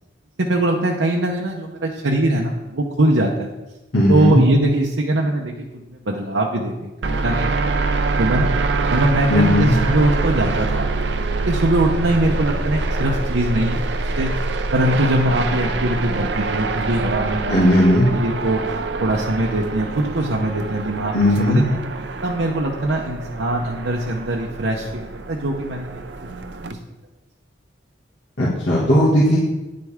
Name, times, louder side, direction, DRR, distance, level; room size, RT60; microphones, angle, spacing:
voice 1, 0.4-3.5 4.1-7.6 8.2-8.5 8.9-10.8 11.5-14.3 14.7-17.5 18.1-21.8 22.2-26.0 26.7-26.8, right 1 dB, 85° right, -1 dB, 0.9 m, -22 dB
voice 2, 3.9-4.4 9.3-9.8 17.5-18.1 21.1-21.6 28.4-29.4, left 1 dB, 80° left, -8 dB, 2.1 m, -16 dB
sound 1, 7.0-26.7, right 3 dB, 65° right, 0.6 m, -25 dB
9.7 x 7.7 x 3.6 m, 1.0 s
head